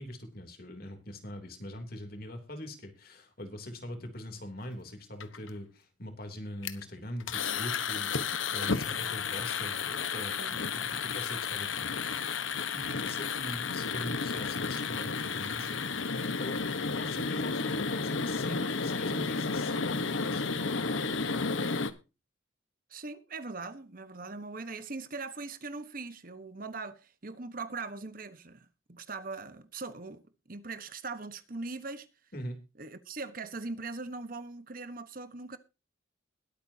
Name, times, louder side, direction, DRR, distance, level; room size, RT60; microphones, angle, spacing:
voice 1, 0.0-12.4 12.7-15.8 16.4-16.7 16.9-20.6 32.3-32.6, left 1 dB, 50° left, 3.1 m, -42 dB
sound 1, 5.2-5.5 6.6-6.8 7.2-21.9, left 5 dB, 75° left, 1.2 m, -32 dB
voice 2, 22.9-30.2 30.5-32.1 32.8-35.6, right 3 dB, 45° right, 1.2 m, -41 dB
21.5 x 8.8 x 2.8 m
head